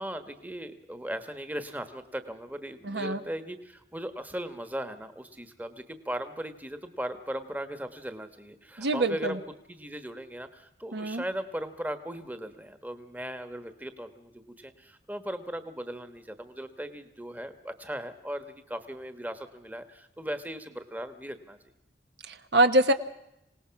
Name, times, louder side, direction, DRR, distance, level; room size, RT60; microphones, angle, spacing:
voice 1, 0.0-9.4 9.7-21.6, equal, 10° right, 10 dB, 1.3 m, -38 dB
voice 2, 2.8-3.2 8.8-9.4 10.9-11.2 22.3-22.9, right 1 dB, 70° right, 9 dB, 1.2 m, -24 dB
26.0 x 18.5 x 5.9 m, 0.83 s
head